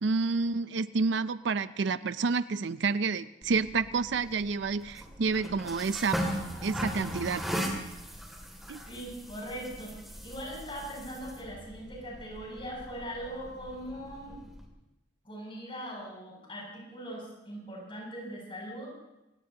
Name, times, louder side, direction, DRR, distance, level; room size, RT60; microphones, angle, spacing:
voice 1, 0.0-6.4 6.6-7.5 8.7-8.8, right 4 dB, 65° right, 14 dB, 0.5 m, -29 dB
sound 1, 3.4-14.7, equal, ahead, 2.5 m, -39 dB
voice 2, 8.9-9.9 10.2-14.4 15.2-18.9, equal, 30° left, -2 dB, 7.3 m, -40 dB
27.0 x 17.5 x 2.9 m, 0.94 s
head